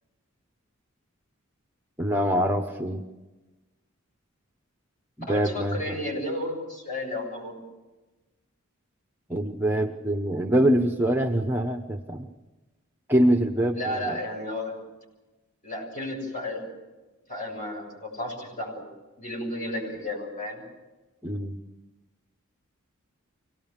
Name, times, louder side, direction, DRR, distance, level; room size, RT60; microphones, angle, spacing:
voice 1, 2.0-3.0 5.2-5.8 9.3-12.3 13.1-14.2 21.2-21.6, right 1 dB, 10° right, 5 dB, 0.8 m, -24 dB
voice 2, 5.3-7.6 13.7-14.8 15.6-16.7 17.3-18.8 19.2-20.6, left 1 dB, 40° left, -1 dB, 7.1 m, -33 dB
25.0 x 18.5 x 7.3 m, 1.2 s
head